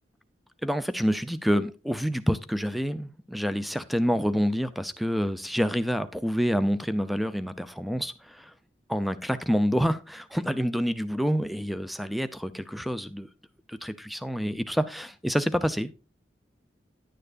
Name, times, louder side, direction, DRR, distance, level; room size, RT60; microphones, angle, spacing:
voice 1, 0.6-8.5 8.9-13.3 13.7-16.0, equal, ahead, 0.5 m, -27 dB
10.5 x 9.0 x 2.5 m
head